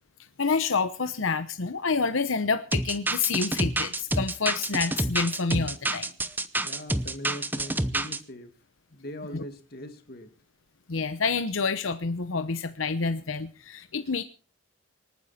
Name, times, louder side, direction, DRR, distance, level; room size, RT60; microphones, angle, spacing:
voice 1, 0.4-6.1 9.3-9.4 10.9-14.2, left 4 dB, 90° left, 10 dB, 0.9 m, -28 dB
sound 1, 2.7-8.2, right 2 dB, 10° right, 0.7 m, -28 dB
voice 2, 6.6-8.5 8.9-10.3, left 1 dB, 50° left, 7 dB, 2.2 m, -41 dB
26.0 x 9.5 x 4.3 m, 0.37 s
head